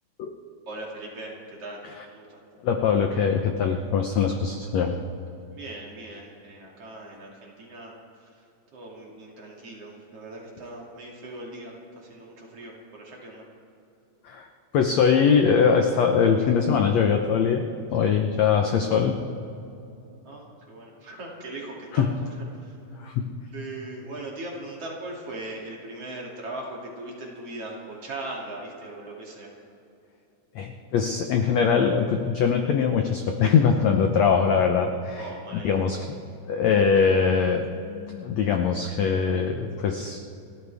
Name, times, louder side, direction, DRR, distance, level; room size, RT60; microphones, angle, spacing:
voice 1, 0.7-2.4 5.5-7.9 8.2-8.4 8.7-13.5 20.2-22.8 23.5-29.5 35.1-35.7, right 2 dB, 45° right, -3 dB, 3.3 m, -39 dB
voice 2, 2.6-5.0 14.2-14.5 14.7-17.7 17.9-19.2 21.9-22.1 23.0-23.3 30.5-36.2 36.4-40.2, left 6 dB, 75° left, 4 dB, 1.6 m, -22 dB
29.5 x 13.5 x 3.5 m, 2.7 s
omnidirectional pair, 4.2 m